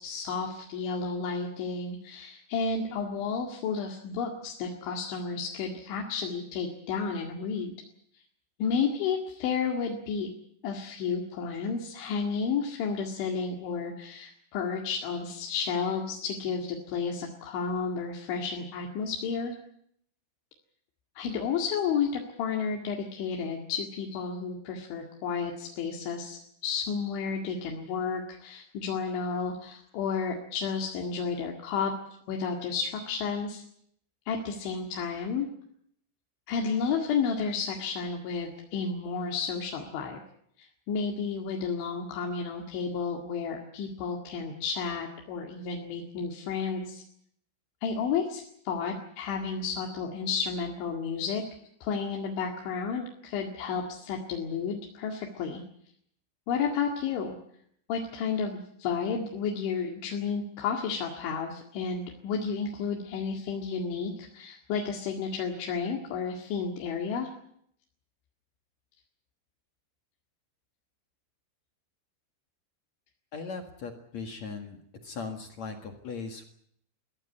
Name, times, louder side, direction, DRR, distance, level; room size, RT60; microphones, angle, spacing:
voice 1, 0.0-7.7 8.6-10.3 10.6-19.6 21.2-31.9 32.3-33.6 34.3-35.5 36.5-40.2 40.6-47.0 47.8-51.4 51.8-55.6 56.5-57.4 57.9-67.3, left 5 dB, 90° left, 1 dB, 4.5 m, -32 dB
voice 2, 73.3-74.8 75.0-76.4, left 4 dB, 50° left, 5 dB, 2.3 m, -38 dB
22.5 x 16.0 x 9.8 m, 0.69 s
omnidirectional pair, 5.2 m